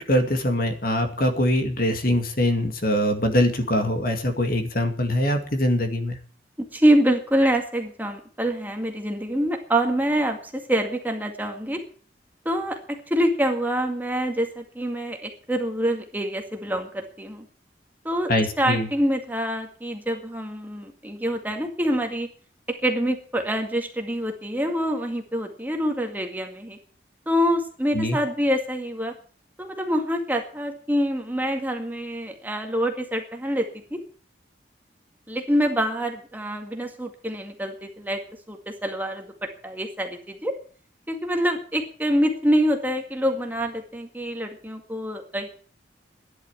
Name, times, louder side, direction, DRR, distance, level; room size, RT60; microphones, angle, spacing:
voice 1, 0.0-6.2 18.3-18.9 27.9-28.2, left 1 dB, 50° left, 6 dB, 2.2 m, -23 dB
voice 2, 6.6-11.8 12.5-17.5 18.0-18.3 18.6-22.3 22.7-26.8 27.3-29.2 29.6-34.0 35.3-38.2 38.5-40.6 41.1-45.5, equal, 10° right, 3 dB, 2.0 m, -26 dB
12.5 x 11.0 x 7.3 m, 0.44 s
head